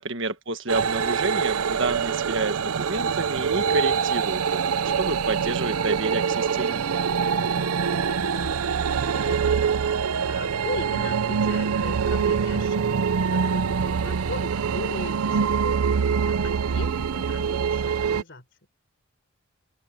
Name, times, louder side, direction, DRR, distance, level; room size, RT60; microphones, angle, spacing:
voice 1, 0.0-6.9, right 3 dB, 60° right, 1.7 m, -29 dB
sound 1, 0.7-18.2, right 6 dB, 90° right, 0.6 m, -24 dB
voice 2, 7.3-18.4, left 2 dB, 55° left, 3.8 m, -40 dB
open air
head